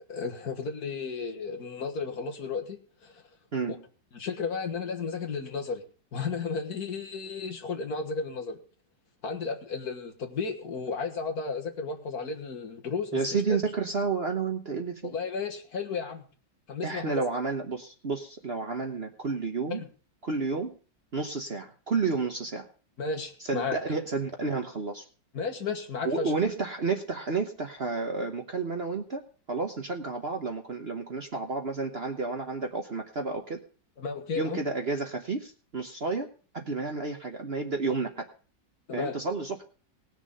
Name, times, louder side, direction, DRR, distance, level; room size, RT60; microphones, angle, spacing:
voice 1, 0.1-3.1 3.7-3.8 4.1-5.8 6.1-8.6 9.2-13.2 13.5-13.6 15.0-16.2 16.7-17.2 19.7-19.9 23.0-23.8 25.3-26.3 34.0-34.6 38.9-39.2, left 5 dB, 55° left, 4 dB, 2.0 m, -33 dB
voice 2, 13.1-15.1 16.8-19.8 20.2-20.7 21.1-22.6 23.4-25.0 26.0-33.6 34.4-36.3 36.5-38.3 38.9-39.7, right 4 dB, 40° right, 4 dB, 1.1 m, -31 dB
19.0 x 6.4 x 5.4 m, 0.39 s
omnidirectional pair, 1.9 m